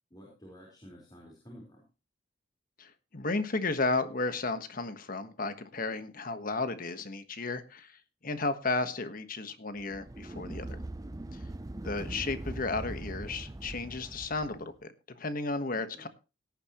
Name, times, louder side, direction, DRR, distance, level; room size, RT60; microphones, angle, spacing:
voice 1, 0.1-1.9 15.7-16.0, equal, 20° left, -2 dB, 4.4 m, -51 dB
voice 2, 2.8-10.8 11.8-16.1, left 3 dB, 45° left, 10 dB, 1.3 m, -33 dB
sound 1, 9.8-14.6, right 1 dB, 20° right, 0.6 m, -41 dB
18.0 x 10.0 x 3.1 m, 0.30 s
head